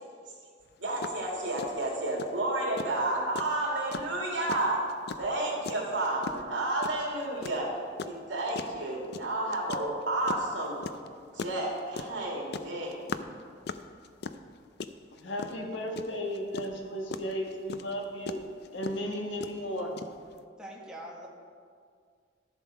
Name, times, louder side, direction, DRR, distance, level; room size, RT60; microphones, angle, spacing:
sound 1, 0.7-0.8 1.0-1.2 1.6-20.4, left 4 dB, 60° left, 0.4 m, -39 dB
voice 1, 0.8-4.8 5.2-7.7 8.0-10.8 11.3-13.0, right 2 dB, 75° right, -2 dB, 2.5 m, -31 dB
voice 2, 15.1-18.4 18.7-19.9, equal, 75° left, 1 dB, 1.6 m, -35 dB
voice 3, 20.6-21.3, right 1 dB, 5° right, -3 dB, 1.5 m, -43 dB
13.0 x 7.2 x 4.8 m, 2.1 s
head